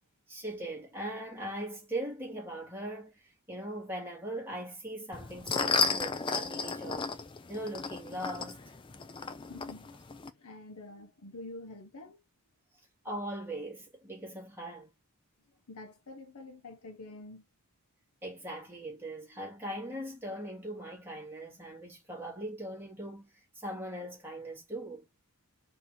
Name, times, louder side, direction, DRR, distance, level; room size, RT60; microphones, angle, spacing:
voice 1, 0.3-7.1 7.5-8.7 13.0-14.9 18.2-25.0, right 1 dB, 10° right, 2.0 m, -40 dB
sound 1, 5.1-10.3, left 4 dB, 20° left, 0.4 m, -33 dB
voice 2, 9.4-9.9 10.3-12.2 15.7-17.4, left 2 dB, 85° left, 1.0 m, -47 dB
4.2 x 3.0 x 4.2 m
head